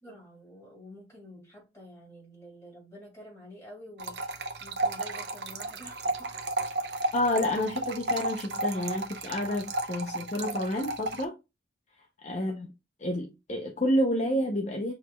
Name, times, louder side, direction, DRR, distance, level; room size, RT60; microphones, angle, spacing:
voice 1, 0.0-4.2 4.6-6.3 6.9-7.1 10.0-10.1 12.4-12.7, equal, 15° left, 2.5 m, -49 dB
sound 1, 4.0-11.2, right 2 dB, 65° right, 0.7 m, -33 dB
voice 2, 7.1-11.4 12.2-12.7 13.0-14.9, left 1 dB, 40° left, 0.6 m, -29 dB
6.3 x 3.0 x 2.2 m
head